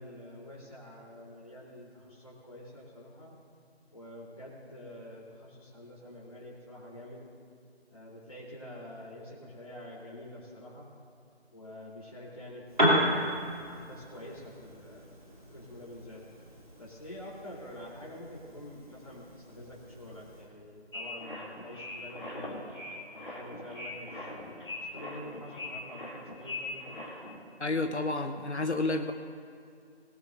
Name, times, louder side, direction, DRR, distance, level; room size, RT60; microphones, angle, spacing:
voice 1, 0.0-3.3 3.9-7.2 7.9-10.9 11.5-13.4 13.7-15.1 15.5-16.2 16.8-22.6 23.1-27.0, left 1 dB, 30° left, -5 dB, 3.7 m, -47 dB
Piano, 12.7-20.5, equal, 45° right, 3.1 m, -34 dB
sound 1, 20.9-27.4, left 2 dB, 50° left, 2.8 m, -41 dB
voice 2, 27.6-29.1, left 2 dB, 90° left, 7 dB, 1.0 m, -30 dB
22.0 x 12.5 x 2.7 m, 2.4 s
figure-of-eight pair, 175°, 33 cm